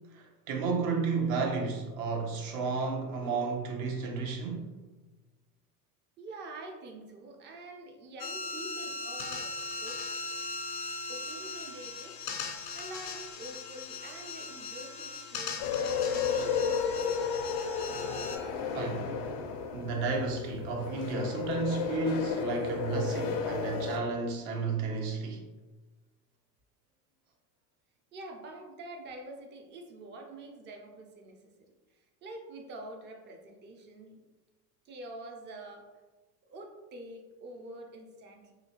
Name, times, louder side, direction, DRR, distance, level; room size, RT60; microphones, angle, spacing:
voice 1, 0.1-4.7 18.7-19.3 19.7-25.5, right 4 dB, 60° right, 0.9 m, -32 dB
voice 2, 6.2-9.5 9.8-10.0 11.1-12.2 12.7-17.4 28.1-34.2 34.8-35.9 36.5-38.5, right 1 dB, 25° right, 0.4 m, -46 dB
sound 1, 8.2-18.4, left 3 dB, 85° left, 0.6 m, -39 dB
sound 2, 15.6-24.0, left 6 dB, 45° left, 0.4 m, -33 dB
2.8 x 2.7 x 2.8 m
hypercardioid pair, 90°, 49 cm